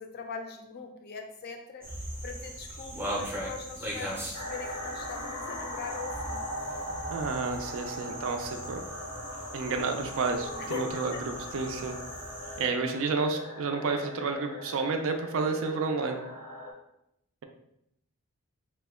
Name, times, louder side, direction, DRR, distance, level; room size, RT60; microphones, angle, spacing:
voice 1, 0.0-1.9 2.2-6.4 10.6-11.2, left 4 dB, 45° left, 5 dB, 0.4 m, -41 dB
sound 1, 1.8-12.6, equal, 10° right, 0.5 m, -40 dB
sound 2, 4.3-16.7, left 1 dB, 85° left, 0.7 m, -40 dB
voice 2, 7.1-8.8 9.5-12.0 12.6-16.2, right 4 dB, 60° right, 5 dB, 0.4 m, -30 dB
2.9 x 2.1 x 3.5 m, 0.80 s
head